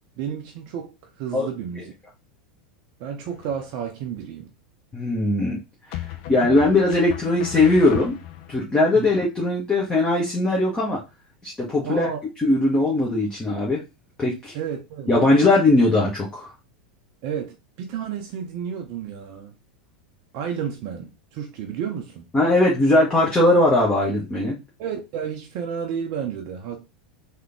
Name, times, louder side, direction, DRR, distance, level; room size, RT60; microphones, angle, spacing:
voice 1, 0.2-1.9 3.0-4.5 8.9-9.1 11.8-12.2 14.5-15.1 17.2-19.5 20.3-22.3 24.8-26.9, right 8 dB, 45° right, 0.6 m, -31 dB
sound 1, 3.2-3.8 5.9-8.6, left 12 dB, 50° left, 0.6 m, -35 dB
voice 2, 4.9-5.6 6.3-8.2 8.5-11.0 11.4-12.1 12.4-13.8 14.2-14.5 15.1-16.5 22.3-24.6, left 2 dB, 15° left, 1.2 m, -19 dB
3.5 x 2.9 x 3.5 m
figure-of-eight pair, 85°, 5 cm